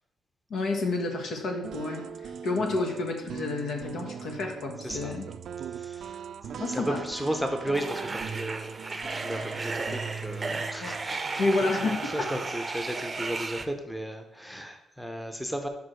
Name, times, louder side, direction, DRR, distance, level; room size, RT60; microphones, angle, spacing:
voice 1, 0.5-5.3 6.6-7.0 10.8-10.9 11.4-12.3, left 3 dB, 75° left, 2 dB, 1.4 m, -30 dB
sound 1, 1.6-11.1, right 7 dB, 65° right, 0.4 m, -40 dB
voice 2, 4.8-5.2 5.6-6.2 6.5-15.7, right 1 dB, 5° left, 5 dB, 0.8 m, -35 dB
sound 2, 7.7-13.6, right 3 dB, 25° right, 0.6 m, -34 dB
5.6 x 4.9 x 6.2 m, 0.86 s
cardioid pair, 110°, 0 cm